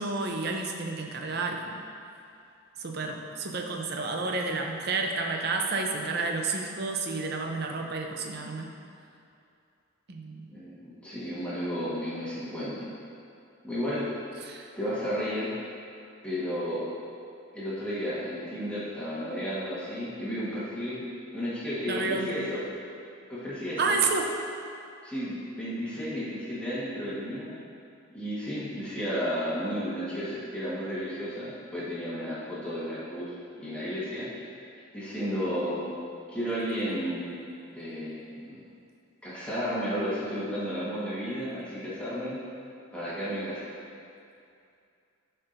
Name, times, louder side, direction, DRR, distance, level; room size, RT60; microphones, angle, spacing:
voice 1, 0.0-1.7 2.8-8.7 10.1-10.4 14.4-14.7 21.9-22.3 23.8-24.3, right 3 dB, 50° right, 2 dB, 0.6 m, -30 dB
voice 2, 10.5-12.9 13.6-14.2 14.8-15.5 16.2-16.9 17.5-21.0 21.3-22.6 23.3-23.9 25.0-27.5 28.1-34.3 34.9-35.8 36.3-37.3 37.7-38.6 39.2-42.4 42.9-43.6, equal, 5° left, -10 dB, 1.3 m, -33 dB
11.5 x 4.4 x 2.6 m, 2.5 s
head